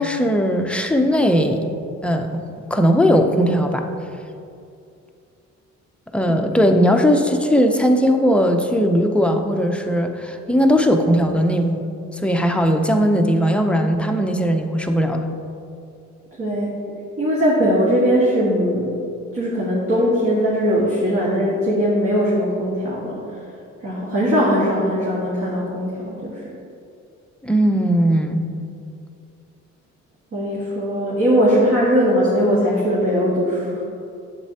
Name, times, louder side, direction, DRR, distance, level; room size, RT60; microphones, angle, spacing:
voice 1, 0.0-1.7 2.0-2.4 2.7-3.8 6.1-11.8 12.1-15.2 27.4-28.4, equal, 5° left, 4 dB, 0.6 m, -18 dB
voice 2, 16.4-16.8 17.2-18.9 19.3-23.2 23.8-26.4 30.3-33.8, equal, 50° right, -7 dB, 1.6 m, -20 dB
7.9 x 7.4 x 2.8 m, 2.5 s
cardioid pair, 90°, 30 cm